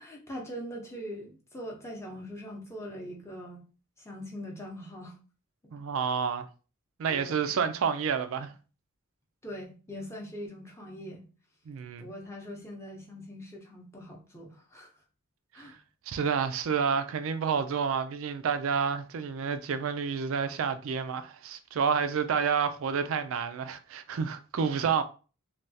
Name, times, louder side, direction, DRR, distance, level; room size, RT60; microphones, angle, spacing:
voice 1, 0.0-3.6 4.0-5.2 7.1-7.5 9.4-11.3 12.0-14.9 15.5-15.7, equal, 15° left, 0.6 m, -42 dB
voice 2, 5.7-6.5 7.0-8.5 11.7-12.1 15.6-15.8 16.1-25.0, right 6 dB, 65° right, 0.3 m, -29 dB
3.2 x 2.3 x 2.7 m
head